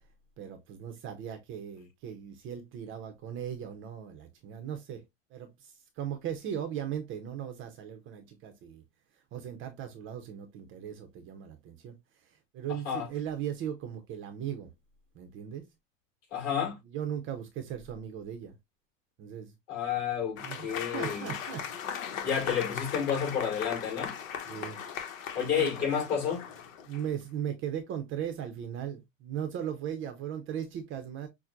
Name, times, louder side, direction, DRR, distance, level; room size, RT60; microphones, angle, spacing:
voice 1, 0.4-5.0 5.3-8.8 9.3-11.9 12.5-14.7 15.2-15.7 16.9-18.5 19.2-19.5 20.4-20.7 20.9-21.7 24.5-24.8 25.5-25.7 26.8-31.3, right 9 dB, 30° right, 0.6 m, -38 dB
voice 2, 16.3-16.8 19.7-21.3 22.2-24.1 25.3-26.4, left 8 dB, 40° left, 2.4 m, -30 dB
Applause / Crowd, 20.4-27.2, left 8 dB, 75° left, 1.0 m, -38 dB
5.9 x 2.1 x 2.4 m
supercardioid pair, 125°, 40 cm